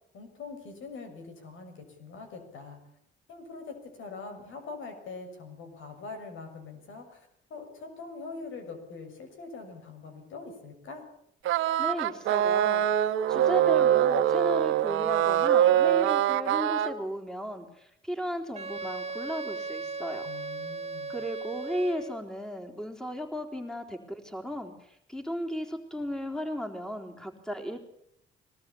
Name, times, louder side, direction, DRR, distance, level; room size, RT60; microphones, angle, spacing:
voice 1, 0.1-2.8 3.3-11.0 20.2-21.1, left 4 dB, 80° left, 6 dB, 6.7 m, -43 dB
sound 1, 11.5-16.9, right 11 dB, 85° right, 1.4 m, -24 dB
voice 2, 11.8-12.8 13.3-20.3 21.1-27.8, equal, 5° left, 4 dB, 3.8 m, -35 dB
Wind instrument woodwind instrument, 18.5-22.3, right 3 dB, 30° right, 1.2 m, -37 dB
22.0 x 18.5 x 8.7 m, 0.72 s
cardioid pair, 90°, 20 cm